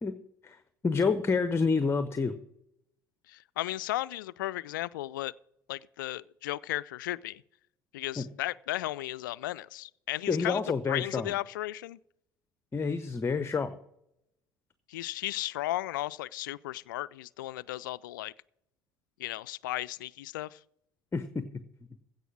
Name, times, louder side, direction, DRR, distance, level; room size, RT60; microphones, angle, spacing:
voice 1, 0.8-2.3 8.2-8.3 10.3-11.3 12.7-13.7 21.1-21.3, left 4 dB, 20° left, 0.8 m, -28 dB
voice 2, 3.3-5.3 5.7-7.4 7.9-10.6 10.9-12.0 14.9-18.3 19.2-20.6, left 16 dB, 70° left, 0.4 m, -35 dB
16.0 x 5.4 x 7.5 m
figure-of-eight pair, 55°, 11 cm